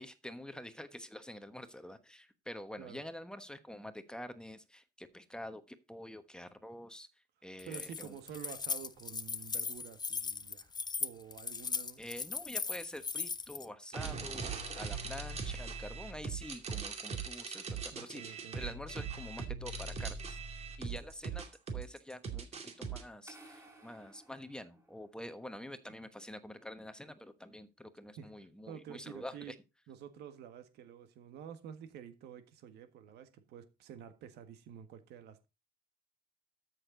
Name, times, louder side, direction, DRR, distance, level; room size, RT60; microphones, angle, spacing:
voice 1, 0.0-7.1 7.4-8.2 12.0-21.4 21.7-29.6, left 1 dB, 5° left, 1.2 m, -47 dB
Keys jangling, 7.6-13.6, left 5 dB, 25° left, 0.7 m, -38 dB
voice 2, 7.7-10.7 11.0-12.0 17.9-18.6 28.2-28.3 28.7-29.5 29.9-35.5, right 8 dB, 80° right, 1.6 m, -49 dB
sound 1, 13.9-23.0, right 5 dB, 40° right, 2.5 m, -40 dB
sound 2, 23.3-25.4, right 2 dB, 15° right, 5.5 m, -57 dB
13.0 x 6.6 x 3.8 m
cardioid pair, 110°, 17 cm